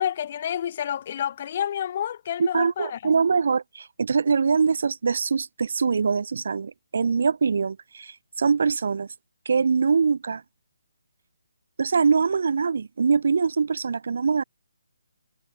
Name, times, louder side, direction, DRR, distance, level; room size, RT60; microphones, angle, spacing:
voice 1, 0.0-3.0, left 9 dB, 30° left, 5.3 m, -29 dB
voice 2, 2.4-9.1 9.5-10.4 11.8-14.4, right 5 dB, 55° right, 7.2 m, -23 dB
hypercardioid pair, 170°, 0 cm